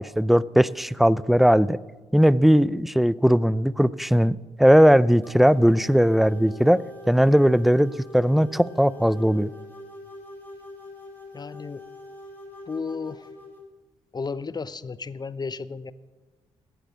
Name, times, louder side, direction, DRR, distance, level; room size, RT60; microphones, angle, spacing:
voice 1, 0.0-1.8 2.1-6.8 7.1-9.5, equal, ahead, 0.4 m, -19 dB
sound 1, 5.2-13.6, left 2 dB, 15° left, 4.8 m, -44 dB
voice 2, 11.3-11.8 12.7-13.3 14.1-15.9, left 4 dB, 30° left, 0.7 m, -33 dB
16.0 x 10.0 x 6.3 m
hypercardioid pair, 45°, 14 cm